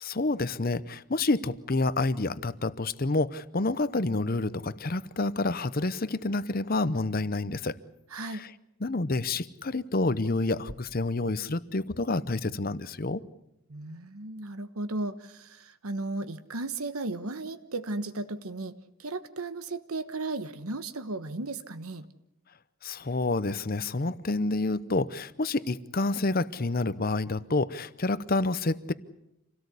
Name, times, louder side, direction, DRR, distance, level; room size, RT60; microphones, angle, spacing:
voice 1, 0.0-7.8 8.3-8.5 8.8-13.2 22.8-28.9, left 2 dB, 40° left, 15 dB, 0.8 m, -28 dB
voice 2, 8.1-8.4 13.7-22.1, right 2 dB, 80° right, 11 dB, 1.2 m, -35 dB
27.0 x 17.5 x 8.4 m, 0.86 s
head